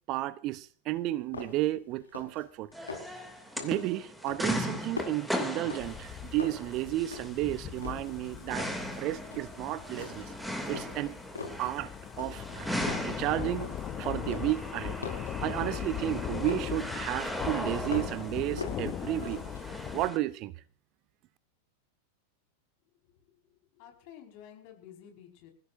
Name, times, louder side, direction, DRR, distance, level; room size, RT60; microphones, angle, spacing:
voice 1, 0.1-2.9 3.6-8.7 9.0-10.3 10.7-11.2 11.6-11.9 12.2-12.7 13.0-19.4 19.9-20.5, right 16 dB, 40° right, 0.8 m, -33 dB
sound 1, 0.9-1.0 1.3-1.7 2.0-2.4 2.7-3.2 3.6-3.9 4.3-6.1 6.4-7.5 7.8-8.9 9.3-9.6 10.0-10.4 10.7-11.7 12.2-12.6 12.9-14.0 14.3-16.8 17.2-18.3 18.6-19.6, left 4 dB, 75° left, 4.8 m, -42 dB
sound 2, 2.7-20.2, equal, ahead, 2.8 m, -38 dB
sound 3, 5.8-20.1, left 10 dB, 30° left, 1.1 m, -40 dB
voice 2, 23.2-25.5, left 9 dB, 45° left, 5.3 m, -52 dB
27.0 x 16.0 x 2.7 m
figure-of-eight pair, 90°, 0 cm